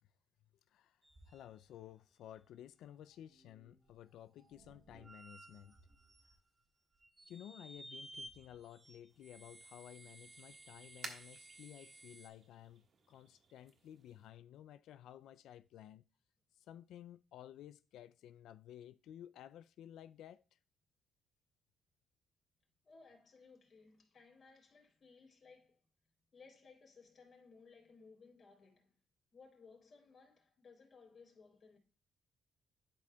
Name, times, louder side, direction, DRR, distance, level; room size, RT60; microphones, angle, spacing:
voice 1, 0.7-5.8 7.3-16.0 16.5-20.6, left 11 dB, 80° left, 0.3 m, -55 dB
sound 1, 1.0-1.9 2.4-2.5 2.9-6.6 7.0-12.3, right 1 dB, 30° right, 2.1 m, -57 dB
sound 2, 9.1-14.3, right 4 dB, 55° right, 1.4 m, -56 dB
voice 2, 22.8-25.8 26.3-28.9 29.3-31.8, left 4 dB, 50° left, 3.5 m, -61 dB
11.5 x 5.0 x 2.2 m
cardioid pair, 90°, 0 cm